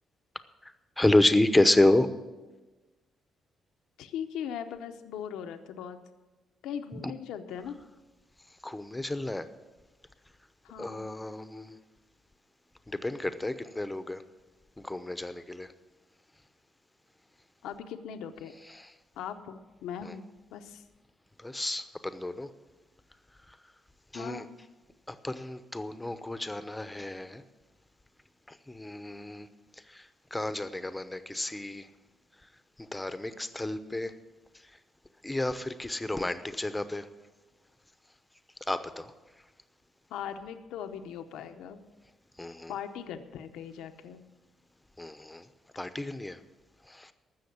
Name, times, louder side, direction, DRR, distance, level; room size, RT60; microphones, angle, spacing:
voice 1, 0.6-2.1 6.9-7.1 8.6-9.5 10.8-11.8 12.9-14.2 14.8-15.7 18.7-18.9 20.0-20.2 21.4-22.5 24.1-24.4 25.1-27.4 28.5-29.5 29.9-31.9 32.8-34.1 35.2-37.1 38.7-39.1 42.4-42.7 45.0-45.5 45.8-46.4 46.9-47.1, left 1 dB, 10° left, 11 dB, 0.8 m, -30 dB
voice 2, 4.0-6.0 6.6-7.7 10.6-11.1 17.6-18.5 19.2-20.8 24.1-24.5 40.1-41.8 42.7-44.2, left 8 dB, 90° left, 7 dB, 0.8 m, -39 dB
14.5 x 6.5 x 8.5 m, 1.2 s
cardioid pair, 90°, 0 cm